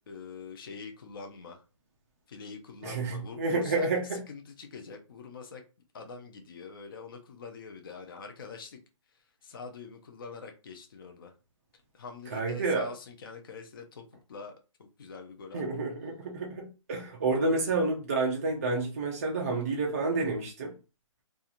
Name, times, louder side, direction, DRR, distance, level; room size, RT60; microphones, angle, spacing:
voice 1, 0.1-1.6 2.3-5.6 5.9-8.8 9.4-11.3 11.9-14.5 14.8-15.6, left 4 dB, 40° left, 0.5 m, -44 dB
voice 2, 2.8-4.2 12.3-12.9 15.5-20.7, right 3 dB, 25° right, 0.4 m, -29 dB
2.9 x 2.3 x 2.4 m
hypercardioid pair, 165°, 17 cm